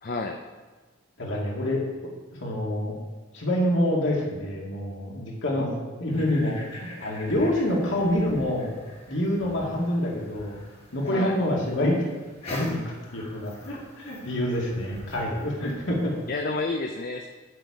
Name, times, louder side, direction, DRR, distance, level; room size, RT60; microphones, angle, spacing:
voice 1, 0.0-0.4 11.0-11.4 16.3-17.3, left 3 dB, 45° left, 4 dB, 0.6 m, -30 dB
voice 2, 1.2-1.8 2.4-2.9 3.3-5.7 6.0-8.7 9.1-10.6 10.9-12.0 12.4-12.8 13.1-16.1, left 1 dB, 65° left, -2 dB, 2.2 m, -26 dB
sound 1, 6.1-16.4, left 1 dB, 30° left, 1.8 m, -45 dB
8.9 x 7.6 x 4.9 m, 1.3 s
head